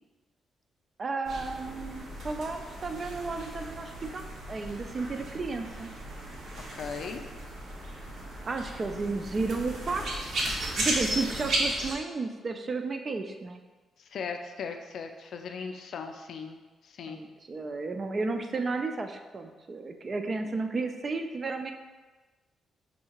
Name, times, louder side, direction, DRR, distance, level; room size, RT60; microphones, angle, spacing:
voice 1, 1.0-5.9 8.4-10.4 10.8-13.6 17.1-21.7, right 3 dB, 35° right, 6 dB, 0.3 m, -33 dB
sound 1, 1.3-12.0, right 1 dB, 65° right, 0.8 m, -35 dB
voice 2, 6.7-7.2 14.0-16.6 16.8-17.2, left 5 dB, 65° left, 5 dB, 0.4 m, -38 dB
5.3 x 2.8 x 2.9 m, 1.3 s
cardioid pair, 115°, 0 cm